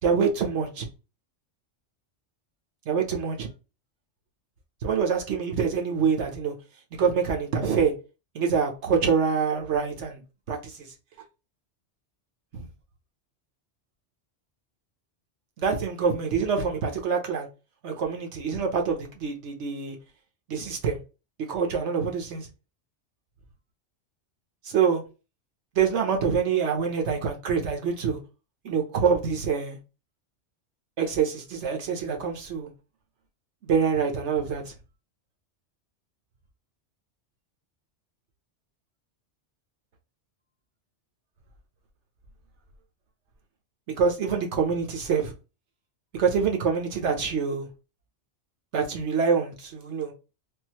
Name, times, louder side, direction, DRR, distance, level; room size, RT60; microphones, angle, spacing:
voice 1, 0.0-0.9 2.9-3.5 4.8-6.5 6.9-7.9 8.3-10.2 10.5-10.7 12.5-12.7 15.6-17.5 17.8-20.0 20.5-21.0 21.5-22.5 24.7-25.0 25.7-28.2 28.6-29.8 31.0-32.7 33.6-34.7 44.0-45.3 46.1-47.7 48.7-50.1, right 6 dB, 75° right, 1.2 m, -25 dB
3.7 x 2.6 x 2.9 m
omnidirectional pair, 1.2 m